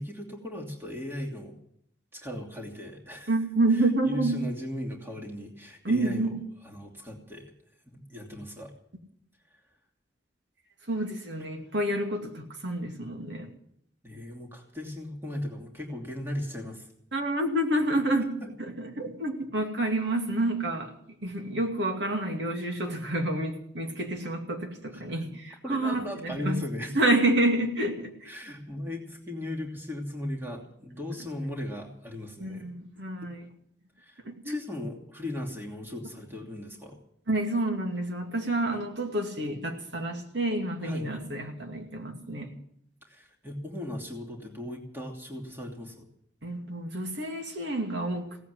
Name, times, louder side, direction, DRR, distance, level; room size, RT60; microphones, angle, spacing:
voice 1, 0.0-1.5 2.1-3.3 3.8-6.3 6.6-7.5 7.8-8.7 14.0-16.9 18.4-18.5 24.9-25.0 25.6-26.9 28.3-32.7 34.0-34.2 34.4-37.0 40.8-41.1 43.1-46.0, left 1 dB, 15° right, -1 dB, 2.8 m, -37 dB
voice 2, 3.3-4.4 5.8-6.4 10.9-13.5 17.1-20.9 21.2-26.6 26.9-28.3 32.4-33.5 34.2-34.6 37.3-42.5 46.4-48.4, right 1 dB, 75° right, 3 dB, 2.5 m, -29 dB
17.5 x 8.3 x 9.5 m, 0.69 s
head